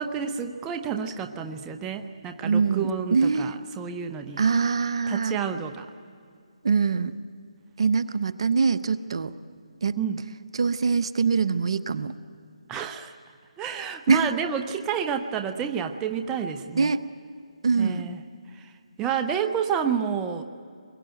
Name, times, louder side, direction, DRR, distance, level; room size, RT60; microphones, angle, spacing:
voice 1, 0.0-4.4 5.1-5.9 10.0-10.2 12.7-13.1 13.6-16.9 17.8-18.2 18.5-18.7 19.0-20.4, right 7 dB, 15° right, 6 dB, 0.8 m, -29 dB
voice 2, 2.4-3.6 4.4-5.4 6.6-7.1 7.8-9.3 9.8-10.0 10.6-12.1 14.1-14.3 16.8-17.0 17.6-18.0, right 5 dB, 55° right, 13 dB, 0.9 m, -23 dB
26.0 x 22.0 x 9.0 m, 2.2 s
figure-of-eight pair, 155°, 3 cm